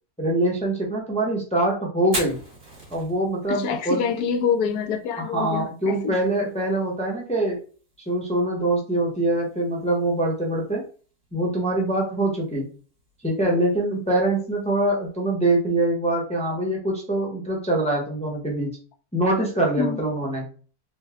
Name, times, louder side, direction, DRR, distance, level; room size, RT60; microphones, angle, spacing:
voice 1, 0.2-2.4 2.9-4.0 5.2-7.6 8.0-10.8 11.3-12.7 13.2-18.7 19.1-20.5, right 1 dB, 5° left, 0.6 m, -24 dB
Fire, 2.0-15.9, right 1 dB, 70° right, 2.1 m, -43 dB
voice 2, 3.5-6.2 19.8-20.0, left 6 dB, 80° left, 1.1 m, -26 dB
3.9 x 2.2 x 3.4 m
omnidirectional pair, 1.6 m